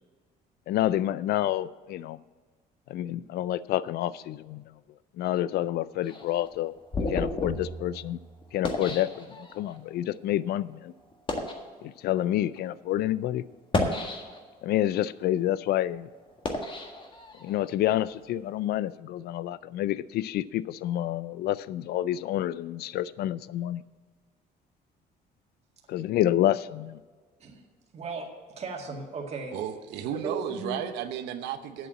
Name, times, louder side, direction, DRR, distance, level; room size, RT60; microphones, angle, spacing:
voice 1, 0.7-2.2 2.9-4.6 5.2-6.7 7.1-8.2 8.5-10.9 11.8-13.4 14.6-16.1 17.4-23.8 25.9-27.0, left 13 dB, 70° left, 18 dB, 0.4 m, -28 dB
sound 1, 6.0-9.8 10.5-10.6 11.1-11.7 12.4-12.6 13.5-14.6 15.1-17.7, left 2 dB, 30° left, 1.7 m, -33 dB
voice 2, 27.9-29.6 30.1-30.8, right 4 dB, 40° right, 1 dB, 2.0 m, -36 dB
voice 3, 29.5-31.9, right 9 dB, 90° right, 9 dB, 0.9 m, -34 dB
8.1 x 7.7 x 8.5 m, 1.5 s
cardioid pair, 110°, 17 cm